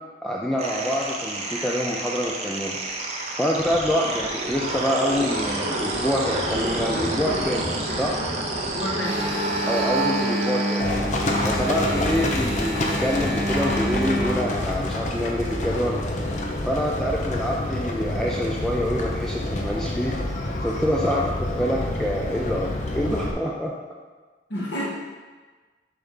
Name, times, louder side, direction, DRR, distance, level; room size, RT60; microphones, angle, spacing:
voice 1, 0.2-2.8 3.4-7.7 7.9-8.2 9.7-10.9 11.4-16.0 16.7-20.1 20.6-23.7, equal, 5° left, -3 dB, 0.4 m, -26 dB
sound 1, 0.6-10.8, right 2 dB, 35° right, 0.8 m, -28 dB
voice 2, 8.6-9.4 21.1-21.3 24.5-24.9, equal, 75° left, -6 dB, 1.4 m, -30 dB
Engine, 9.0-14.6, right 1 dB, 20° right, 1.6 m, -28 dB
Livestock farm animals working animals, 10.8-23.3, left 1 dB, 40° left, 0.7 m, -27 dB
6.9 x 3.5 x 5.5 m, 1.3 s
head